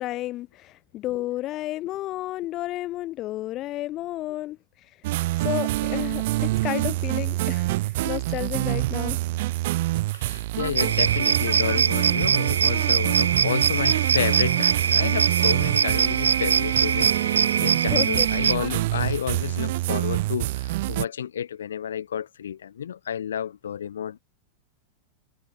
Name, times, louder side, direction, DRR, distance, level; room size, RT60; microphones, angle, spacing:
voice 1, 0.0-4.9 5.4-9.2 17.9-18.3, left 15 dB, 35° left, 1.7 m, -32 dB
sound 1, 5.0-21.1, right 18 dB, 50° right, 1.3 m, -26 dB
voice 2, 10.1-24.2, left 9 dB, 65° left, 3.3 m, -31 dB
sound 2, 10.8-18.6, right 6 dB, 70° right, 0.6 m, -23 dB
figure-of-eight pair, 90°, 0 cm